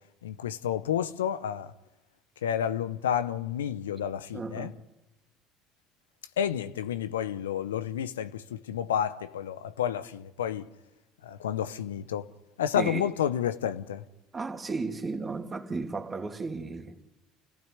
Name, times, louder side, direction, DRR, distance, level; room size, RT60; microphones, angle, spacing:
voice 1, 0.2-1.7 2.4-4.7 6.4-10.7 11.2-12.3 12.6-14.0, left 9 dB, 85° left, 0.7 m, -30 dB
voice 2, 4.3-4.8 12.7-13.1 14.3-17.0, right 3 dB, 25° right, 2.5 m, -34 dB
29.5 x 15.0 x 9.8 m
hypercardioid pair, 70°, 0 cm